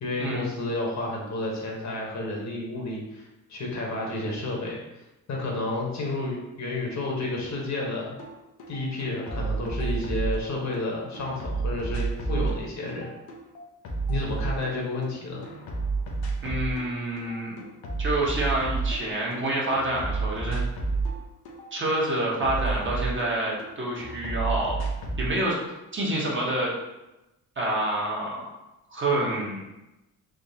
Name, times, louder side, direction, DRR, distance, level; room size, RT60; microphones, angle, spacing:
voice 1, 0.0-4.8 5.3-8.2 8.7-13.1 14.1-15.5, left 2 dB, 50° left, -2 dB, 1.1 m, -31 dB
sound 1, 8.2-8.3 8.6-10.8 11.1-15.1 15.4-16.9 17.2-19.4 19.7-23.7 24.0-25.3, right 3 dB, 85° left, 0.8 m, -30 dB
voice 2, 16.4-17.5 18.0-20.6 21.7-24.8 25.2-25.6 25.9-26.7 27.6-28.4 28.9-29.6, right 1 dB, 35° right, -4 dB, 1.0 m, -27 dB
3.6 x 2.9 x 2.8 m, 0.97 s
cardioid pair, 95°, 36 cm